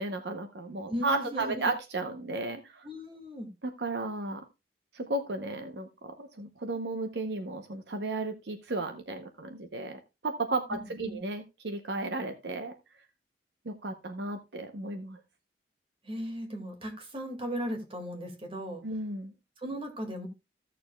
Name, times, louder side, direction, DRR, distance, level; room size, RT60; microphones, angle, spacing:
voice 1, 0.0-2.9 3.8-4.4 4.9-5.9 6.2-12.7 13.7-15.2 18.8-19.3, right 2 dB, 65° right, 0.8 m, -34 dB
voice 2, 0.9-1.7 2.8-3.5 10.7-11.2 16.0-18.8 19.6-20.3, equal, 30° right, 2.0 m, -37 dB
15.5 x 6.7 x 2.3 m
head